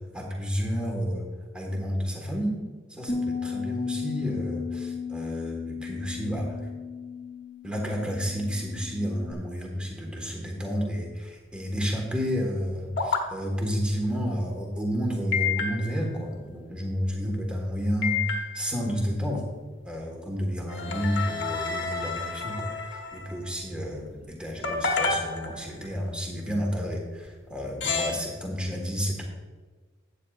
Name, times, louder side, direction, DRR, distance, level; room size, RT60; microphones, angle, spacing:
voice 1, 0.1-1.3 1.5-2.6 2.9-6.6 7.6-18.2 18.5-19.4 19.8-29.2, equal, 5° right, -1 dB, 1.5 m, -31 dB
Bass guitar, 3.1-9.3, left 5 dB, 30° left, 1.3 m, -35 dB
sound 1, 13.0-13.2 15.3-16.2 18.0-18.8 20.7-23.4 24.6-25.9 27.3-27.4 27.8-28.1, left 5 dB, 60° left, 1.2 m, -29 dB
13.0 x 8.9 x 2.5 m, 1.4 s
head